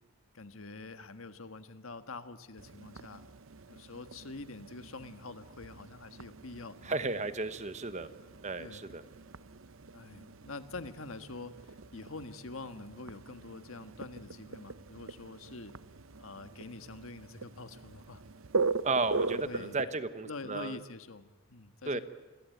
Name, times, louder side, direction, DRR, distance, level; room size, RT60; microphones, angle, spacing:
voice 1, 0.3-3.3 3.7-7.0 8.6-8.8 9.9-11.5 11.9-15.7 16.2-18.2 19.4-19.8 20.2-22.0, left 3 dB, 75° left, 10 dB, 1.6 m, -45 dB
sound 1, 2.6-19.8, right 4 dB, 70° right, 0.8 m, -41 dB
voice 2, 6.8-8.1 8.4-9.0 18.8-20.8 21.9-22.0, right 3 dB, 30° right, 12 dB, 1.2 m, -33 dB
28.5 x 22.0 x 9.3 m, 1.2 s
head